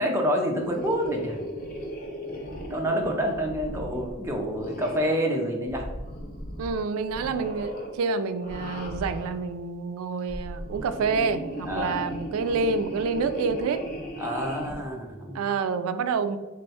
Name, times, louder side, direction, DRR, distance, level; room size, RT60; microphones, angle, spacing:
voice 1, 0.0-1.4 2.7-5.9 11.7-12.0 14.2-15.4, equal, 10° right, 0 dB, 0.5 m, -27 dB
sound 1, 0.6-5.2 5.6-6.8 7.1-7.9 8.4-9.4 10.1-14.8, equal, 40° left, 0.6 m, -37 dB
voice 2, 6.6-13.8 15.3-16.4, right 4 dB, 80° right, 12 dB, 0.3 m, -28 dB
3.7 x 2.2 x 4.1 m, 1.3 s
head